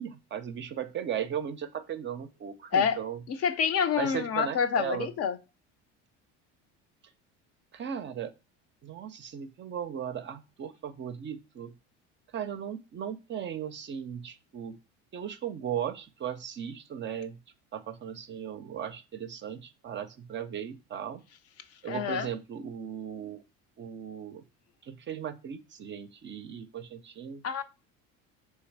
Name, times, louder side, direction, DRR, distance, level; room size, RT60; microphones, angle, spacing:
voice 1, 0.0-3.2 4.0-5.1 7.7-8.3 8.8-11.7 12.3-14.8 15.1-17.4 17.7-21.2 21.8-23.4 23.8-24.4 24.8-27.4, right 9 dB, 35° right, 0.4 m, -37 dB
voice 2, 3.3-5.4 21.9-22.3 27.4-27.6, left 7 dB, 45° left, 0.5 m, -27 dB
3.3 x 3.1 x 4.5 m
supercardioid pair, 80°, 34 cm